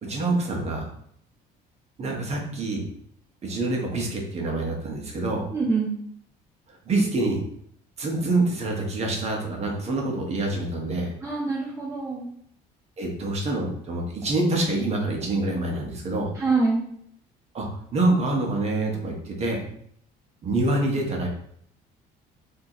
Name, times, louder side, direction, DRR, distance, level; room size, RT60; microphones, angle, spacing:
voice 1, 0.0-0.9 2.0-2.9 3.4-5.4 6.7-7.4 8.0-11.1 13.0-16.3 17.5-17.7 17.9-19.6 20.4-21.3, right 2 dB, 35° right, 0 dB, 1.1 m, -26 dB
voice 2, 5.5-6.0 11.2-12.3 16.4-16.8, right 3 dB, 15° right, -3 dB, 0.7 m, -25 dB
5.9 x 2.9 x 3.0 m, 0.67 s
cardioid pair, 135°, 18 cm